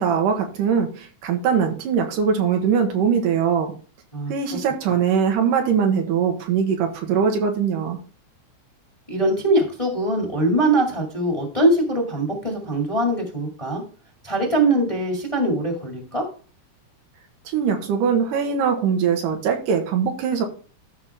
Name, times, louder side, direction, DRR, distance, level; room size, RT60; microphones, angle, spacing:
voice 1, 0.0-3.7 4.3-8.0 17.5-20.5, right 7 dB, 85° right, 4 dB, 3.0 m, -21 dB
voice 2, 9.1-13.8 14.2-16.2, right 1 dB, 15° left, 1 dB, 1.5 m, -22 dB
13.5 x 5.8 x 3.5 m, 0.38 s
omnidirectional pair, 3.7 m